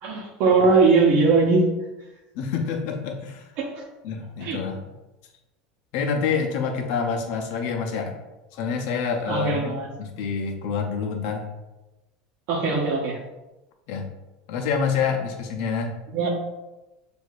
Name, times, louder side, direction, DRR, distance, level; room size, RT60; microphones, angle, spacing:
voice 1, 0.0-1.6 3.6-3.8 4.4-4.6 9.3-9.9 12.5-13.2 16.1-16.3, right 4 dB, 55° right, -1 dB, 0.9 m, -20 dB
voice 2, 2.3-3.5 4.0-4.8 5.9-8.2 8.5-11.4 13.9-14.1 14.5-16.0, left 6 dB, 65° left, 2 dB, 0.6 m, -27 dB
6.3 x 2.6 x 2.4 m, 1.0 s
supercardioid pair, 120°, 4 cm